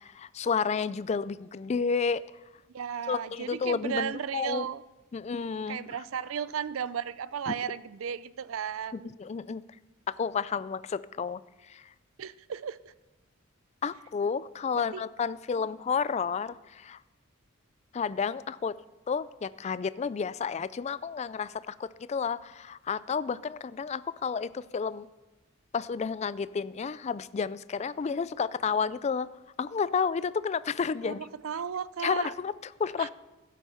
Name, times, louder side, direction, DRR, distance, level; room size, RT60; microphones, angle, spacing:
voice 1, 0.0-2.2 3.1-4.7 5.1-5.8 7.5-7.6 8.9-9.6 10.1-11.4 11.7-11.8 13.8-17.0 17.9-18.7 19.1-25.1 25.7-29.3 29.6-31.3 32.0-33.1, left 5 dB, 35° left, 17 dB, 0.3 m, -31 dB
voice 2, 2.7-4.8 5.7-9.1 12.2-12.8 14.7-15.0 15.5-15.6 28.0-28.2 31.0-32.3 33.0-33.1, right 7 dB, 75° right, 17 dB, 0.5 m, -35 dB
15.5 x 8.2 x 5.6 m, 1.1 s
head